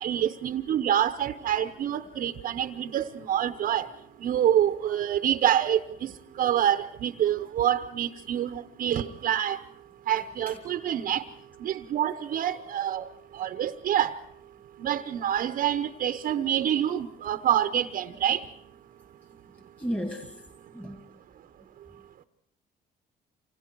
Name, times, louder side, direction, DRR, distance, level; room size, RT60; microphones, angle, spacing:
voice 1, 0.0-3.9 4.2-5.8 6.4-9.6 10.1-11.2 11.6-13.0 13.4-14.2 14.8-18.4, right 10 dB, 60° right, 9 dB, 0.9 m, -26 dB
voice 2, 19.5-21.1, equal, 10° left, 5 dB, 1.8 m, -36 dB
28.0 x 26.0 x 4.6 m, 0.79 s
cardioid pair, 110°, 17 cm